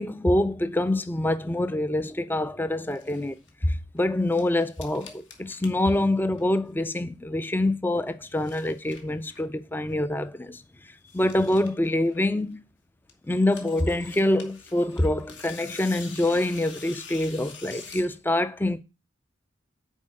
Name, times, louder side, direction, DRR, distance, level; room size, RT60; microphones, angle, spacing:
voice 1, 0.0-12.6 13.2-18.8, left 1 dB, 10° left, 0.4 m, -26 dB
sound 1, 2.8-3.5 4.0-6.8 7.0-7.7 8.1-9.6 9.9-10.0 10.3-10.4 10.6-10.7 10.9-12.7 13.1-18.2, left 5 dB, 65° left, 1.6 m, -46 dB
7.3 x 4.6 x 6.5 m
head